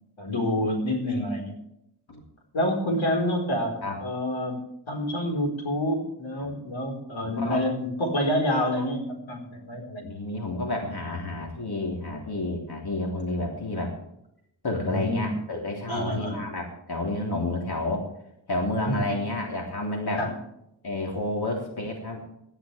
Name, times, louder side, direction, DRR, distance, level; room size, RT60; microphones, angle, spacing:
voice 1, 0.2-1.5 2.5-4.6 4.9-10.0 14.7-15.3 15.9-16.4 18.8-19.0 20.2-20.3, left 1 dB, 90° left, 2 dB, 4.3 m, -27 dB
voice 2, 7.2-7.6 10.0-14.0 14.6-18.1 18.5-20.3 20.8-22.2, left 2 dB, 55° left, 0 dB, 3.5 m, -30 dB
18.5 x 12.5 x 3.4 m, 0.79 s
wide cardioid pair, 95°, 46 cm